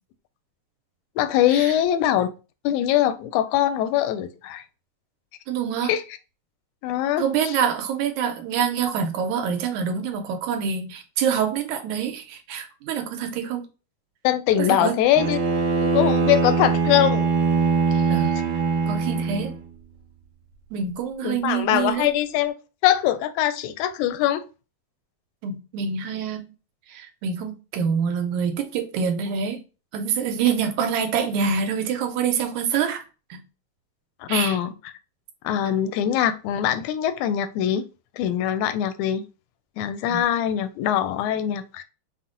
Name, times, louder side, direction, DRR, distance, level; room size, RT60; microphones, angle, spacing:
voice 1, 1.2-2.3 2.6-4.6 5.9-6.0 6.8-7.6 14.2-15.4 15.8-17.3 17.9-18.1 21.2-22.5 22.8-24.4 34.2-34.7 35.4-37.8 38.2-39.3 39.8-41.8, left 11 dB, 85° left, 1.9 m, -22 dB
voice 2, 5.5-5.9 7.2-13.7 14.6-15.0 18.1-18.3 18.9-19.5 20.7-22.1 25.4-26.5 26.9-29.6 29.9-33.0 33.3-33.4 34.3-34.6 40.1-40.2, right 7 dB, 80° right, 2.1 m, -26 dB
Bowed string instrument, 15.1-19.6, right 4 dB, 60° right, 1.4 m, -22 dB
5.6 x 2.1 x 3.7 m
omnidirectional pair, 3.3 m